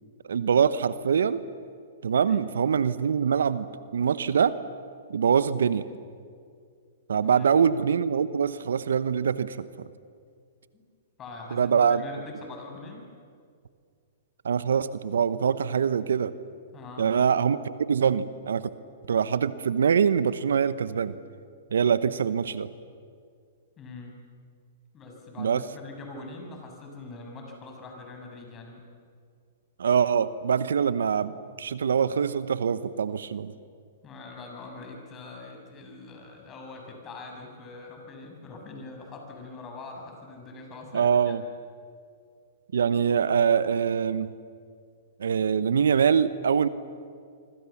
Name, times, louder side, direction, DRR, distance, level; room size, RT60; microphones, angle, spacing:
voice 1, 0.3-1.4 2.0-4.6 5.1-5.9 7.1-9.9 11.5-12.0 14.4-16.3 17.0-18.7 19.1-21.2 21.7-22.7 25.4-25.6 29.8-33.5 40.9-41.4 42.7-44.3 45.2-46.7, right 7 dB, 75° right, 15 dB, 0.9 m, -24 dB
voice 2, 2.1-2.4 7.2-7.6 10.7-10.8 11.2-13.1 16.7-17.1 22.0-22.1 23.8-24.2 24.9-28.8 34.0-41.4, left 3 dB, 25° left, 2 dB, 7.0 m, -43 dB
26.0 x 25.0 x 7.2 m, 2.2 s
hypercardioid pair, 120°, 0 cm